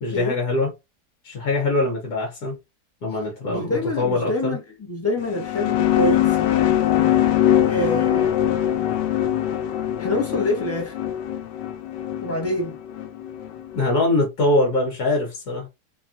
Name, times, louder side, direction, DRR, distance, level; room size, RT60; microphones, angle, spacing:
voice 1, 0.0-0.7 1.2-2.5 3.0-4.6 13.7-15.7, left 2 dB, 65° left, 1.5 m, -23 dB
voice 2, 3.5-6.8 7.6-8.5 10.0-10.9 12.2-12.8, left 1 dB, 10° left, 0.7 m, -26 dB
sound 1, 5.2-13.8, left 11 dB, 90° left, 1.2 m, -22 dB
3.3 x 2.3 x 2.5 m
omnidirectional pair, 1.8 m